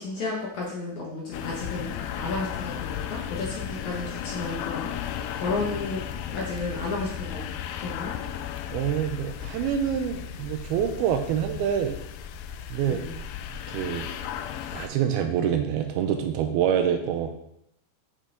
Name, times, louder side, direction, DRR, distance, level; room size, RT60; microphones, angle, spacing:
voice 1, 0.0-6.0 6.3-7.5 7.8-8.1 12.8-13.1, left 3 dB, 60° left, -3 dB, 2.1 m, -32 dB
sound 1, 1.3-14.9, left 9 dB, 85° left, 2.1 m, -35 dB
voice 2, 8.7-12.0 12.7-13.0 13.7-14.1 14.7-17.3, right 9 dB, 80° right, 6 dB, 2.4 m, -26 dB
8.2 x 7.2 x 3.8 m, 0.75 s
omnidirectional pair, 4.8 m